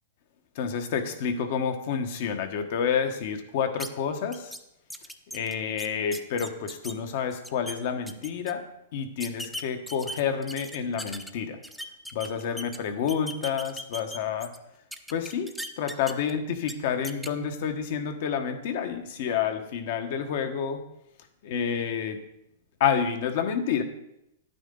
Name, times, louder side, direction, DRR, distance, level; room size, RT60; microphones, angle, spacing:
voice 1, 0.5-4.5 5.3-11.6 12.1-14.5 15.1-20.8 21.4-22.2 22.8-23.8, left 7 dB, 60° left, 7 dB, 1.3 m, -29 dB
sound 1, 3.8-3.9 4.3-4.6 4.9-6.9 7.3-7.7 8.1-8.5 9.2-11.3 11.6-12.8 13.1-14.6 14.9-16.3 16.6-16.7 17.0-17.3, equal, ahead, 0.6 m, -38 dB
10.5 x 9.3 x 3.9 m, 0.82 s
hypercardioid pair, 130°, 0 cm